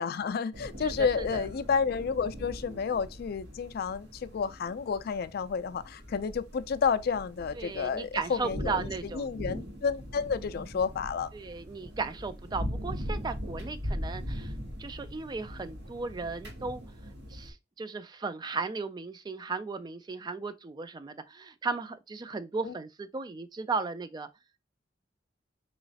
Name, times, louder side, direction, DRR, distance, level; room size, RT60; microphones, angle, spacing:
voice 1, 0.0-11.3 22.6-22.7, left 6 dB, 55° left, 0.4 m, -31 dB
sound 1, 0.5-17.5, equal, 65° right, 1.2 m, -40 dB
voice 2, 0.8-1.4 7.6-9.3 11.3-14.5 14.8-16.8 17.3-24.3, right 4 dB, 25° right, 0.3 m, -36 dB
3.9 x 3.1 x 2.7 m
head